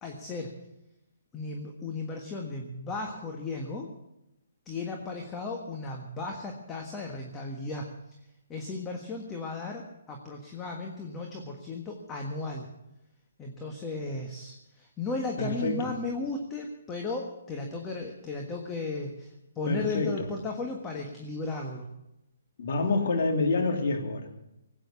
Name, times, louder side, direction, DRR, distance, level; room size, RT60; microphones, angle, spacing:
voice 1, 0.0-0.5 1.3-3.9 4.6-7.9 8.5-12.7 13.4-21.9, left 3 dB, 15° left, 1 dB, 1.5 m, -35 dB
voice 2, 15.4-15.9 19.7-20.3 22.6-24.3, left 3 dB, 55° left, 3 dB, 2.9 m, -27 dB
18.5 x 9.1 x 7.1 m, 0.86 s
hypercardioid pair, 145°, 0 cm